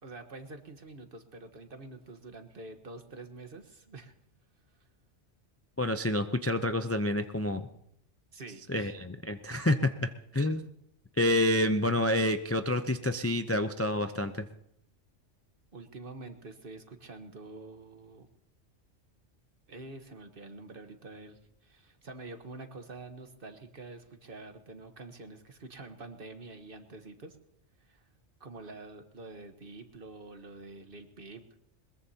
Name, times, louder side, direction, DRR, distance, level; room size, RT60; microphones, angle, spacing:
voice 1, 0.0-4.1 8.3-8.9 15.7-18.3 19.7-27.4 27.8-28.0 28.4-31.4, right 3 dB, 50° right, 7 dB, 1.4 m, -47 dB
voice 2, 5.8-7.7 8.7-10.6 11.2-14.5, left 1 dB, 25° left, 8 dB, 0.3 m, -28 dB
21.5 x 21.0 x 2.8 m, 0.74 s
omnidirectional pair, 1.2 m